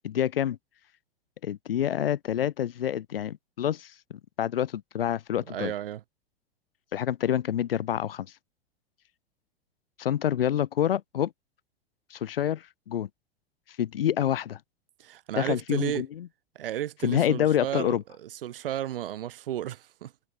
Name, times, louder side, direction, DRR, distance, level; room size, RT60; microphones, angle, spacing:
voice 1, 0.0-0.6 1.4-5.7 6.9-8.3 10.0-11.3 12.1-13.1 13.8-14.6 15.3-16.3 17.0-18.0, left 10 dB, 60° left, 3.6 m, -27 dB
voice 2, 5.5-6.0 15.0-16.1 16.6-20.1, right 12 dB, 60° right, 7.2 m, -33 dB
figure-of-eight pair, 95°, 32 cm